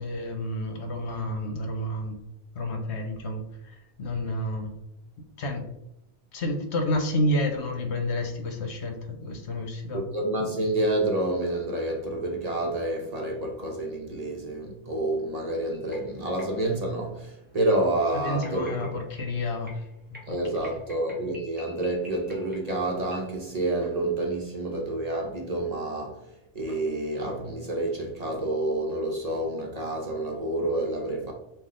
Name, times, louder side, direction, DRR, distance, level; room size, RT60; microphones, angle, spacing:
voice 1, 0.0-2.2 2.5-4.7 5.4-5.6 6.3-10.0 18.1-19.7 20.1-20.2 20.6-20.8, left 1 dB, 80° left, 1.1 m, -30 dB
voice 2, 9.9-19.0 20.3-26.3 26.5-31.3, right 1 dB, 40° right, 0.7 m, -28 dB
sound 1, 15.7-23.4, left 2 dB, 10° right, 1.0 m, -50 dB
5.7 x 2.4 x 3.7 m
omnidirectional pair, 1.1 m